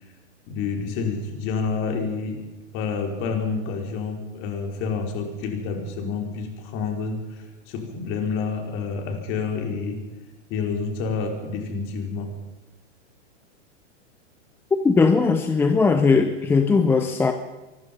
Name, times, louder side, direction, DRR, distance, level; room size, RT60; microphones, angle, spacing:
voice 1, 0.5-2.4 2.7-10.0 10.5-12.3, left 5 dB, 35° left, 4.8 m, -28 dB
voice 2, 14.8-17.3, left 4 dB, 5° left, 0.6 m, -19 dB
24.0 x 20.5 x 5.5 m
supercardioid pair, 150°, 35 cm